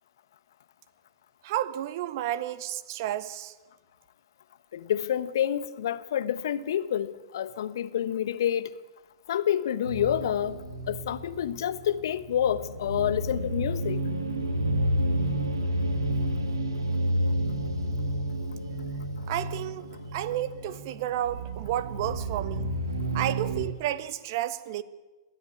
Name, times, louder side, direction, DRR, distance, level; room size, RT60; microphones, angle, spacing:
voice 1, 1.4-3.5 19.2-22.7 23.1-24.8, right 12 dB, 50° right, 14 dB, 1.3 m, -31 dB
voice 2, 4.7-8.7 9.3-10.6 10.9-14.0, left 10 dB, 60° left, 13 dB, 1.2 m, -28 dB
sound 1, 9.8-23.7, right 1 dB, 75° right, 2.4 m, -30 dB
22.5 x 14.5 x 8.6 m, 1.2 s
figure-of-eight pair, 105°, 2 cm